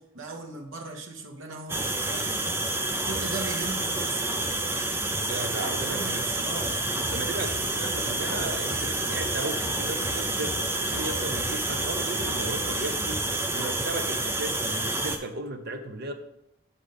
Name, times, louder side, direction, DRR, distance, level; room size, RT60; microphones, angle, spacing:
voice 1, 0.0-2.5 3.0-4.3 5.8-6.8, right 3 dB, 70° right, 3 dB, 1.0 m, -38 dB
sound 1, 1.7-15.2, right 2 dB, 10° right, 0.4 m, -29 dB
voice 2, 5.2-6.5 7.1-13.2 13.5-16.1, right 2 dB, 50° right, 6 dB, 0.7 m, -35 dB
sound 2, 6.6-13.4, left 2 dB, 25° left, 0.8 m, -42 dB
6.9 x 5.0 x 4.0 m, 0.84 s
head